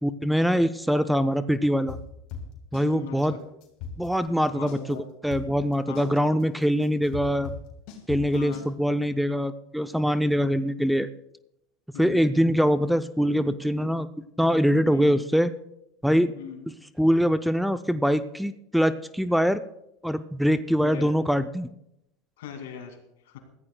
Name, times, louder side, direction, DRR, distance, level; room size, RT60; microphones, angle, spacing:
voice 1, 0.0-2.0 2.7-3.3 4.0-5.0 5.2-7.5 8.1-11.1 12.0-14.1 14.4-15.5 16.0-16.3 17.0-19.6 20.0-21.7, equal, ahead, 11 dB, 0.5 m, -23 dB
sound 1, 1.9-2.9 3.2-3.3 3.6-4.9 5.3-8.7, left 6 dB, 60° left, 3.8 m, -38 dB
voice 2, 2.8-3.4 4.5-5.0 5.9-6.2 8.3-8.7 11.9-12.4 14.8-15.2 16.3-16.7 20.8-21.1 22.4-23.0 23.3-23.4, left 7 dB, 85° left, 5 dB, 2.3 m, -39 dB
21.5 x 15.0 x 2.2 m, 0.82 s
hypercardioid pair, 95°, 0 cm